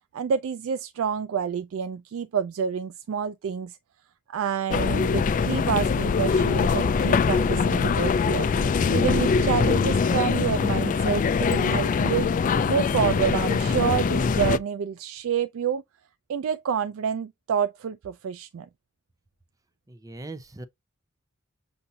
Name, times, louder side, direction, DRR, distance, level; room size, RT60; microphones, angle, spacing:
voice 1, 0.1-3.8 4.3-8.5 8.9-12.3 12.7-15.8 16.3-18.7, right 7 dB, 75° right, 0.3 m, -28 dB
sound 1, 4.7-14.6, left 5 dB, 40° left, 0.3 m, -23 dB
voice 2, 19.9-20.7, right 2 dB, 15° right, 0.6 m, -40 dB
6.9 x 2.6 x 2.7 m
head